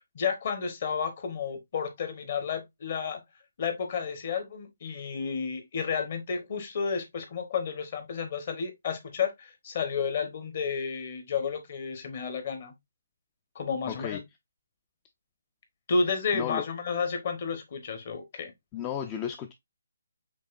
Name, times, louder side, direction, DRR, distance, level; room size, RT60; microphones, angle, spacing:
voice 1, 0.1-3.2 3.6-12.7 13.5-14.2 15.9-18.5, left 5 dB, 45° left, 1.2 m, -31 dB
voice 2, 13.9-14.2 16.3-16.7 18.7-19.5, left 9 dB, 20° left, 0.4 m, -33 dB
5.3 x 3.1 x 2.5 m
figure-of-eight pair, 155°, 0 cm